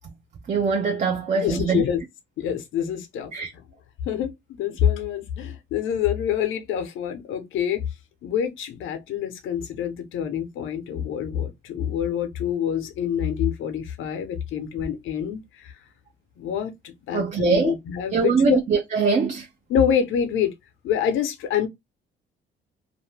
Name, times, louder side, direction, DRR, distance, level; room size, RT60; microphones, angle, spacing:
voice 1, 0.5-1.8 3.3-3.5 17.1-17.7 18.1-19.5, right 5 dB, 40° right, 0.5 m, -22 dB
voice 2, 1.4-2.0 2.4-3.3 4.0-4.3 4.6-7.8 8.2-15.7 16.4-18.6 19.7-20.5 20.8-21.7, left 9 dB, 80° left, 0.7 m, -26 dB
2.5 x 2.2 x 3.2 m
cardioid pair, 90°, 20 cm